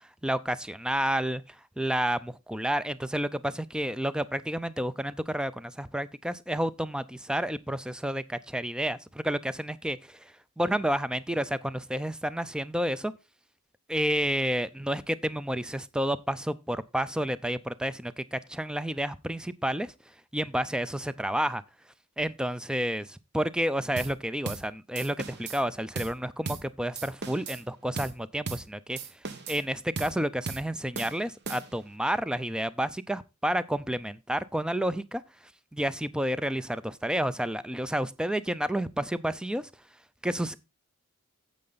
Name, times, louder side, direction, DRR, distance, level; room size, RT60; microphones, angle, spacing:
voice 1, 0.2-13.1 13.9-19.9 20.3-21.6 22.2-29.0 29.5-35.2 35.7-39.7 40.2-40.6, right 1 dB, 5° right, 0.4 m, -30 dB
sound 1, 24.0-24.2 24.4-24.7 24.9-25.6 25.9-26.2 26.4-26.7 26.9-27.6 28.0-28.2 28.5-28.7 29.0-29.6 30.0-30.2 30.5-30.7 30.9-31.9, right 4 dB, 50° right, 1.0 m, -37 dB
8.7 x 7.7 x 3.9 m
head